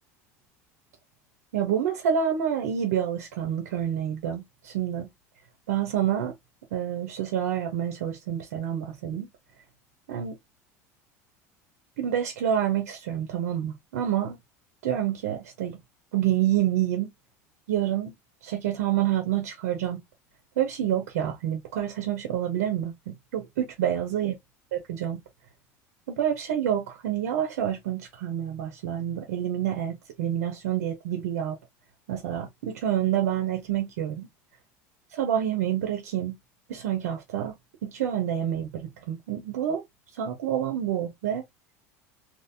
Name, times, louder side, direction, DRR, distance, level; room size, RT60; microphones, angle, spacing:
voice 1, 1.5-5.1 5.7-6.3 6.7-9.3 10.1-10.4 12.0-14.4 14.8-15.8 16.1-17.1 17.7-18.1 18.4-20.0 20.6-24.3 24.7-25.2 26.1-31.6 32.1-34.3 35.1-36.4 36.7-37.6 37.8-39.8 40.1-41.4, right 10 dB, 85° right, 0.9 m, -28 dB
2.9 x 2.6 x 2.7 m
hypercardioid pair, 90°, 8 cm